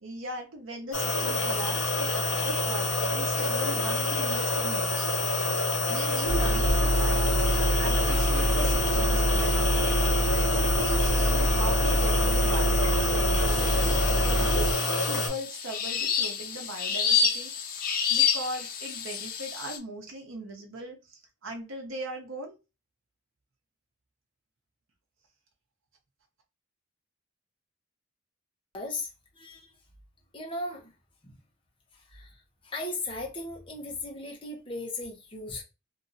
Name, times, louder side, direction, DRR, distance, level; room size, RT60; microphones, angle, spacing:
voice 1, 0.0-5.1 5.3-10.0 10.5-22.6, right 1 dB, 70° right, 0.7 m, -39 dB
sound 1, 0.9-15.3, left 2 dB, 75° left, 1.3 m, -27 dB
sound 2, 6.3-14.7, equal, 50° right, 1.1 m, -25 dB
sound 3, 13.5-19.8, left 6 dB, 45° left, 0.5 m, -29 dB
voice 2, 28.7-29.1 29.3-29.7 30.3-30.9 31.2-31.3 31.9-32.3 32.6-35.6, left 2 dB, 25° left, 0.9 m, -37 dB
2.8 x 2.6 x 2.6 m
head